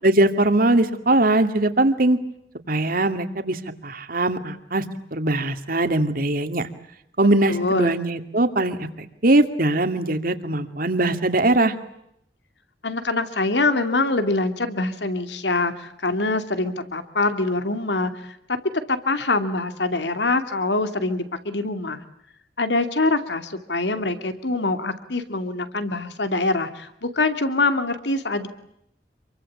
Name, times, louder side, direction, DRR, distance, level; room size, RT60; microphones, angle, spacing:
voice 1, 0.0-2.2 2.7-4.8 5.1-6.6 7.2-11.7, right 2 dB, 55° right, 9 dB, 2.5 m, -21 dB
voice 2, 7.5-8.0 12.8-18.4 18.9-22.0 22.6-28.5, left 2 dB, 75° left, 9 dB, 2.7 m, -24 dB
28.0 x 23.5 x 8.7 m, 0.76 s
head